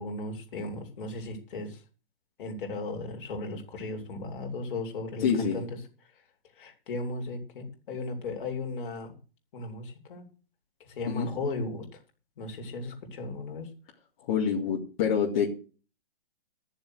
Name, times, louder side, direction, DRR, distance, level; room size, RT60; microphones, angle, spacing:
voice 1, 0.0-1.8 2.4-5.8 6.6-9.2 9.5-10.3 10.9-11.9 12.4-13.7, left 2 dB, 55° left, 2 dB, 3.5 m, -36 dB
voice 2, 5.2-5.6 11.1-11.3 14.3-15.5, left 7 dB, 35° left, -4 dB, 2.5 m, -26 dB
13.0 x 7.0 x 6.3 m, 0.38 s
hypercardioid pair, 150°, 31 cm